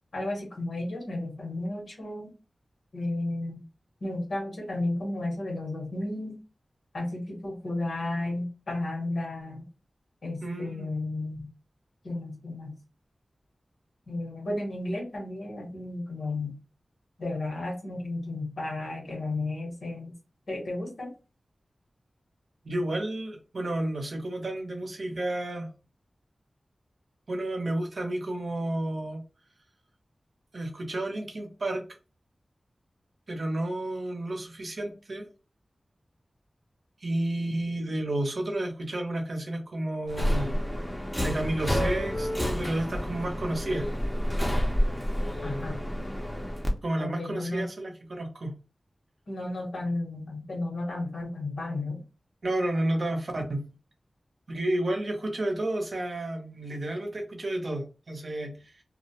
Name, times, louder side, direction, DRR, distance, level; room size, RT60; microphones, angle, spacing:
voice 1, 0.1-2.3 2.9-3.6 4.0-6.4 6.9-9.7 10.2-11.5 12.0-12.8 14.1-16.6 17.2-20.1 20.5-21.1 45.4-45.8 47.0-47.7 49.3-52.0, left 2 dB, 85° left, -1 dB, 1.1 m, -33 dB
voice 2, 10.4-10.9 22.6-25.7 27.3-29.2 30.5-31.8 33.3-35.3 37.0-40.5 41.2-43.9 46.8-48.6 52.4-53.6 54.5-58.8, right 1 dB, 60° right, 3 dB, 0.6 m, -31 dB
Subway metro underground, 40.1-46.7, equal, 5° left, 0.5 m, -29 dB
2.3 x 2.1 x 2.7 m, 0.33 s
wide cardioid pair, 90°, 0 cm